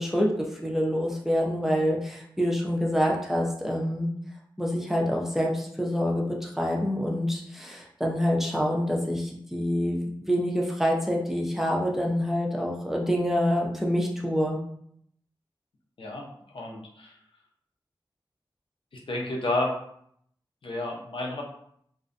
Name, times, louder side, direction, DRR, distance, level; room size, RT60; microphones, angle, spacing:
voice 1, 0.0-4.1 4.6-14.6, equal, 5° right, -1 dB, 0.4 m, -26 dB
voice 2, 16.5-17.1 19.1-19.8 20.6-21.4, left 2 dB, 85° left, -1 dB, 0.5 m, -30 dB
2.5 x 2.1 x 2.5 m, 0.67 s
wide cardioid pair, 90°, 9 cm